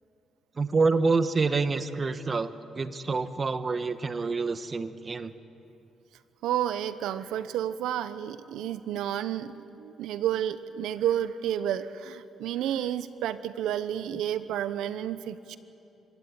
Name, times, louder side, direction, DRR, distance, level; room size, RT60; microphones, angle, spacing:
voice 1, 0.6-5.3, right 4 dB, 35° right, 12 dB, 1.1 m, -27 dB
voice 2, 6.4-15.6, right 10 dB, 85° right, 14 dB, 0.9 m, -31 dB
25.5 x 15.5 x 9.8 m, 2.8 s
cardioid pair, 90°, 0 cm